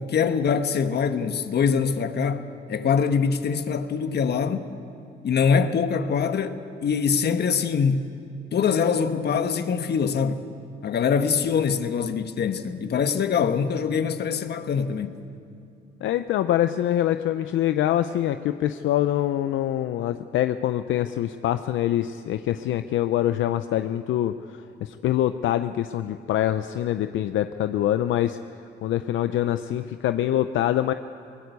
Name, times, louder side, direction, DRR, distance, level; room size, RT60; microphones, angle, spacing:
voice 1, 0.0-4.7 5.2-8.1 8.5-10.4 10.8-15.2, left 6 dB, 55° left, 1.3 m, -24 dB
voice 2, 16.0-28.4 28.8-30.9, left 12 dB, 75° left, 0.6 m, -25 dB
21.5 x 19.0 x 8.2 m
cardioid pair, 90°, 20 cm